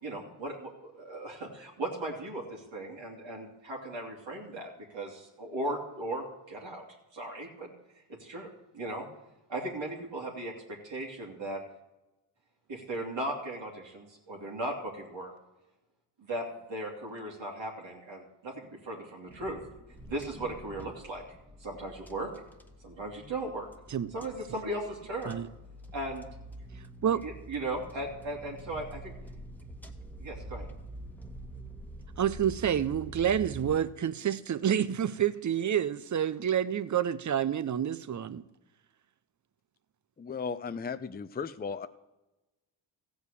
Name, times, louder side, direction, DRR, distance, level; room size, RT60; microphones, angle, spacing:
voice 1, 0.0-6.8 7.1-7.7 8.1-8.5 8.7-9.1 9.5-11.6 12.7-15.3 16.2-19.6 20.1-21.2 21.6-22.3 22.8-23.7 24.1-25.3 25.9-26.3 27.2-29.1 30.2-30.7, right 1 dB, 70° right, 2.7 m, -37 dB
sound 1, 19.3-33.8, right 1 dB, 5° left, 1.4 m, -46 dB
voice 2, 26.8-27.2 32.2-38.4, right 9 dB, 40° right, 0.7 m, -29 dB
voice 3, 40.2-41.9, left 5 dB, 20° left, 0.6 m, -36 dB
14.5 x 5.3 x 8.4 m
cardioid pair, 65°, 47 cm